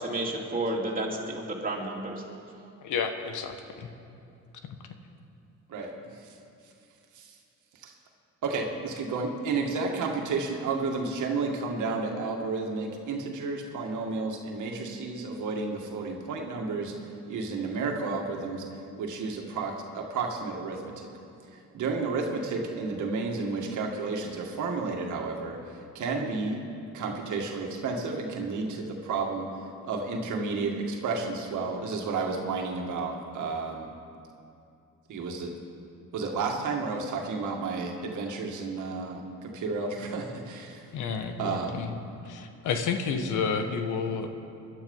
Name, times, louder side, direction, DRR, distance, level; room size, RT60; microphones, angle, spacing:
voice 1, 0.0-2.1, right 1 dB, 30° right, -2 dB, 3.1 m, -31 dB
voice 2, 2.8-3.9 4.6-4.8 40.9-41.9 42.2-44.3, left 5 dB, 80° left, 6 dB, 1.4 m, -31 dB
voice 3, 5.7-6.3 7.1-7.4 7.7-7.9 8.4-18.7 19.0-21.1 21.5-26.6 26.9-29.5 29.8-33.9 35.1-35.5 36.1-40.9 41.4-41.8, right 4 dB, 75° right, 2 dB, 2.1 m, -32 dB
21.0 x 11.5 x 5.5 m, 2.6 s
cardioid pair, 90°, 30 cm